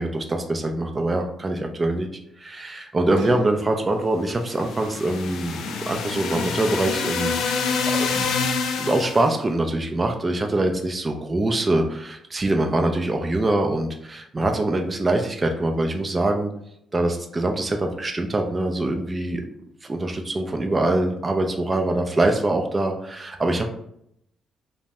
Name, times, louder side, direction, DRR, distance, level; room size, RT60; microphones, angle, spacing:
voice 1, 0.0-2.1 2.4-8.3 8.8-16.5 16.9-19.4 19.8-23.7, right 2 dB, 25° right, 4 dB, 0.3 m, -24 dB
sound 1, 3.1-4.4 5.2-5.3, right 2 dB, 90° right, 0.6 m, -41 dB
sound 2, 4.4-9.3, left 5 dB, 80° left, 0.3 m, -26 dB
2.6 x 2.0 x 3.3 m, 0.75 s
cardioid pair, 90°, 0 cm